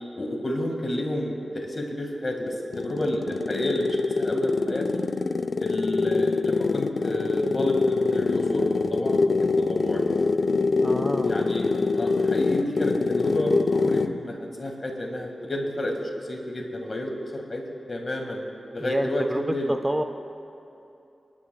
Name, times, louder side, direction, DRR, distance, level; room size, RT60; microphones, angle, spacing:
voice 1, 0.2-5.0 5.6-10.0 11.2-15.9 16.3-17.6 17.9-18.4 18.7-19.7, left 1 dB, 35° left, 1 dB, 1.8 m, -30 dB
sound 1, 2.5-14.2, left 3 dB, 60° left, 0.4 m, -24 dB
voice 2, 10.8-11.4 18.8-19.4 19.7-20.0, right 1 dB, 10° right, 7 dB, 0.4 m, -28 dB
27.5 x 10.5 x 2.3 m, 2.8 s
wide cardioid pair, 105°, 0 cm